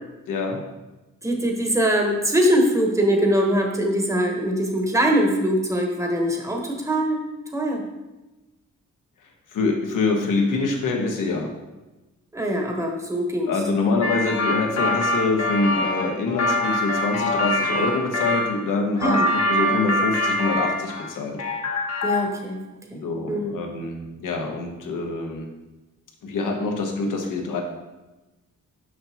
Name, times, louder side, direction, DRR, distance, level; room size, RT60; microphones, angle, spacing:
voice 1, 0.3-0.6 9.5-11.5 13.5-21.4 22.9-25.5 26.2-27.6, left 3 dB, 85° left, 2 dB, 1.1 m, -25 dB
voice 2, 1.2-7.2 7.5-7.8 12.3-13.5 19.0-19.3 22.0-22.6 22.9-23.0 23.3-23.6, equal, 10° right, 1 dB, 1.0 m, -22 dB
sound 1, 14.0-18.5 19.0-21.1 21.4-22.4, left 1 dB, 55° left, 1.0 m, -24 dB
6.5 x 5.6 x 2.8 m, 1.1 s
cardioid pair, 95°, 31 cm